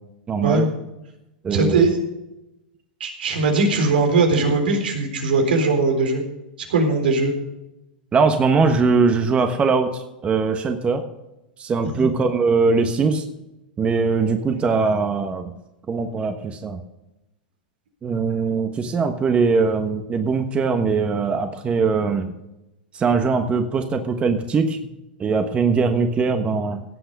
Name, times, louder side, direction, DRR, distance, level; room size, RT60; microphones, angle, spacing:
voice 1, 0.3-0.7 1.4-1.9 8.1-11.0 11.6-13.2 13.8-15.5 15.9-16.8 18.0-22.3 22.9-24.9 25.2-26.8, right 4 dB, 20° right, 6 dB, 1.3 m, -21 dB
voice 2, 1.5-2.0 3.0-6.2 6.7-7.3 11.8-12.1, right 3 dB, 80° right, 3 dB, 3.9 m, -20 dB
17.0 x 8.0 x 5.4 m, 0.93 s
hypercardioid pair, 115°, 5 cm